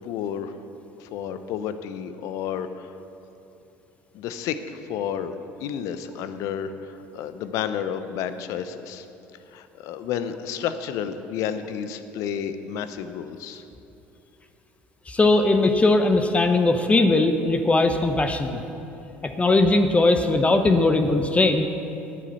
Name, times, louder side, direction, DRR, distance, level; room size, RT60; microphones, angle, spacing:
voice 1, 0.0-0.5 1.0-2.9 4.1-5.3 5.6-9.1 9.5-13.6, left 8 dB, 65° left, 11 dB, 0.7 m, -31 dB
voice 2, 15.1-18.6 19.2-21.7, left 2 dB, 20° left, 6 dB, 0.8 m, -19 dB
9.7 x 7.6 x 8.2 m, 2.9 s
hypercardioid pair, 70°, 6 cm